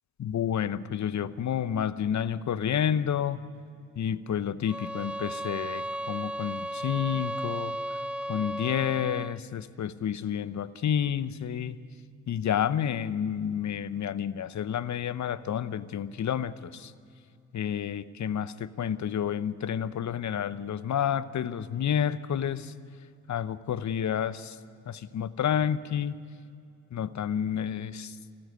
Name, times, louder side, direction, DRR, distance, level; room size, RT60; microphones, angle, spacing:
voice 1, 0.2-3.4 4.0-8.0 8.3-11.8 12.3-16.9 17.5-22.7 23.3-24.6 24.9-26.2 26.9-28.2, left 9 dB, 50° left, 16 dB, 0.9 m, -30 dB
sound 1, 4.7-9.4, right 1 dB, 5° right, 0.6 m, -35 dB
27.5 x 13.0 x 9.5 m, 2.4 s
hypercardioid pair, 45°, 36 cm